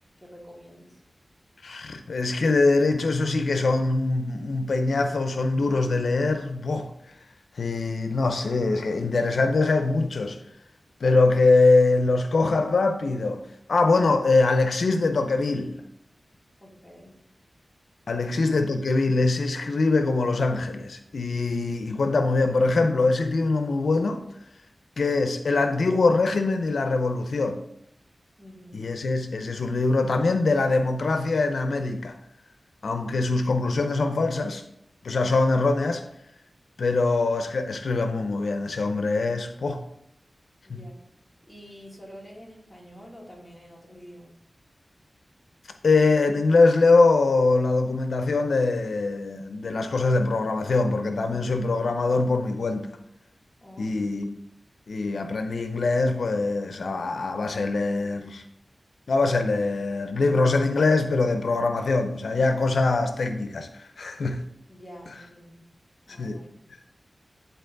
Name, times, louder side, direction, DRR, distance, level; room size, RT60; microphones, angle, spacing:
voice 1, 0.2-1.0 16.6-17.1 28.4-28.8 40.6-40.9 41.5-44.3 53.6-54.0 64.7-65.7 66.1-66.5, equal, 5° left, 2.4 m, -47 dB
voice 2, 1.6-6.9 7.6-10.4 11.0-13.4 13.7-15.8 18.1-24.2 25.0-27.6 28.7-32.1 32.8-34.6 35.0-36.0 36.8-39.8 40.7-40.9 45.8-52.9 53.8-54.3 54.9-58.4 59.1-64.4 66.2-66.4, left 3 dB, 85° left, 0.6 m, -23 dB
10.5 x 4.1 x 3.9 m
wide cardioid pair, 85°, 0 cm